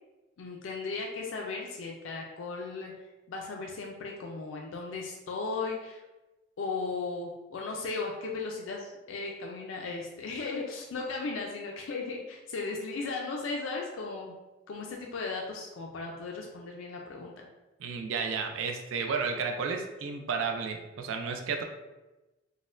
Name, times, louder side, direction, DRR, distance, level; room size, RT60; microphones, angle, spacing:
voice 1, 0.4-2.9 3.3-6.0 6.6-14.3 14.7-17.3, left 3 dB, 75° left, 0 dB, 0.4 m, -36 dB
voice 2, 17.8-21.6, right 5 dB, 75° right, 4 dB, 0.3 m, -32 dB
4.1 x 2.1 x 2.4 m, 1.1 s
head